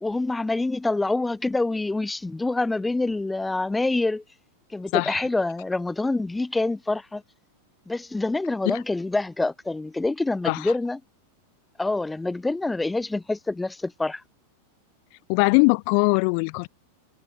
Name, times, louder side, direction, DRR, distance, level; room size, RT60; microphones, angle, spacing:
voice 1, 0.0-4.2 4.7-7.2 7.9-11.0 11.8-14.2, left 2 dB, 10° left, 0.8 m, -26 dB
voice 2, 15.3-16.7, left 40 dB or more, 45° left, 1.3 m, -21 dB
figure-of-eight pair, 90°, 0 cm